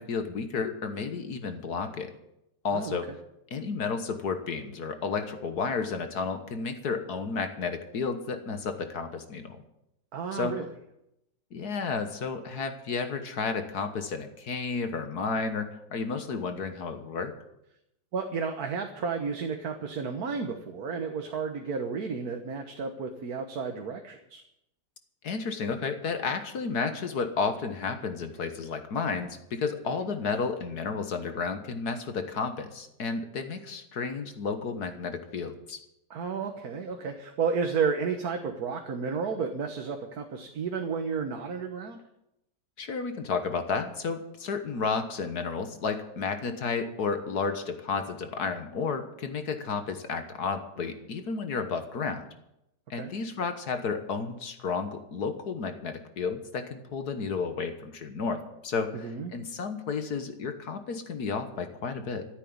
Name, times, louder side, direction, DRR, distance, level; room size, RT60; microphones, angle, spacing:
voice 1, 0.0-2.1 2.6-3.1 3.5-9.6 10.3-10.6 11.5-17.3 25.2-35.8 42.8-52.3 52.9-62.3, left 5 dB, 70° left, 8 dB, 1.9 m, -32 dB
voice 2, 10.1-10.7 18.1-24.4 36.1-42.0 52.9-53.1 58.9-59.3, right 5 dB, 65° right, 4 dB, 1.7 m, -32 dB
14.0 x 8.4 x 9.7 m, 0.82 s
omnidirectional pair, 1.8 m